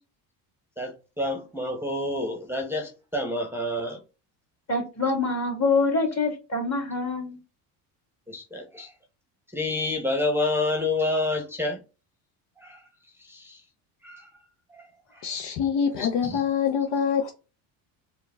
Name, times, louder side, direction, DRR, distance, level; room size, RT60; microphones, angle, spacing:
voice 1, 0.8-4.0 8.3-8.9 9.5-11.8 12.6-12.8 13.2-13.6 14.0-14.3 14.8-14.9 15.1-15.3 16.0-16.4, left 2 dB, 5° right, 0.9 m, -29 dB
voice 2, 4.7-7.4, left 3 dB, 35° left, 2.2 m, -25 dB
voice 3, 15.2-17.3, left 7 dB, 60° left, 0.8 m, -25 dB
4.5 x 2.3 x 3.4 m
supercardioid pair, 80°, 48 cm